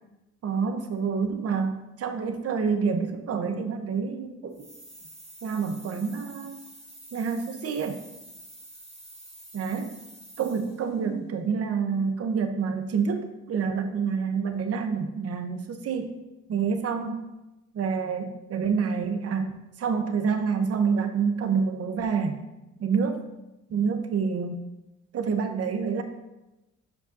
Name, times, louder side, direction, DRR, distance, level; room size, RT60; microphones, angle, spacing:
voice 1, 0.4-4.7 5.4-6.6 7.1-8.0 9.5-9.9 10.4-16.2 16.5-17.2 17.7-22.4 22.8-23.2 23.7-24.7 25.1-26.0, right 5 dB, 50° right, 7 dB, 0.9 m, -27 dB
sound 1, 4.5-10.9, right 1 dB, 20° right, 1.9 m, -48 dB
12.0 x 5.1 x 2.7 m, 0.98 s
cardioid pair, 90°, 30 cm